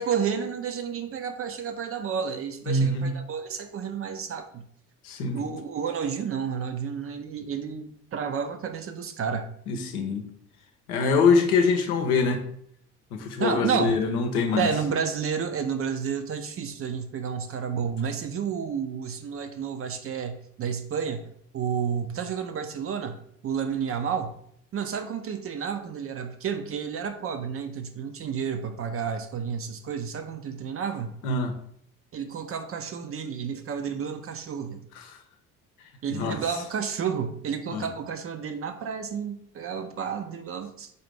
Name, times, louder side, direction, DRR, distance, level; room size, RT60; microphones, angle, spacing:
voice 1, 0.0-4.6 5.3-9.5 13.4-14.0 14.6-24.3 24.7-31.1 32.1-34.8 36.0-40.9, right 7 dB, 30° right, 8 dB, 0.5 m, -31 dB
voice 2, 2.7-3.1 5.0-5.4 9.7-10.3 10.9-12.4 13.1-14.7 31.2-31.5 36.1-36.4 37.7-37.9, left 4 dB, 75° left, 5 dB, 0.8 m, -24 dB
4.1 x 4.0 x 3.2 m, 0.66 s
figure-of-eight pair, 55°, 45 cm